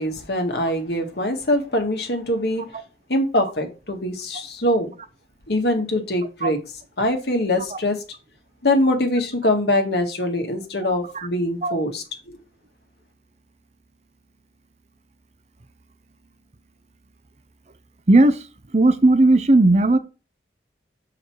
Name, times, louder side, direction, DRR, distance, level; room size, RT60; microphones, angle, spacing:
voice 1, 0.0-2.7 3.1-4.9 5.5-6.6 7.0-8.0 8.6-12.0, left 1 dB, 70° left, 1.8 m, -23 dB
voice 2, 18.1-18.4 18.7-20.0, right 2 dB, 40° right, 0.7 m, -15 dB
6.7 x 4.9 x 4.6 m
head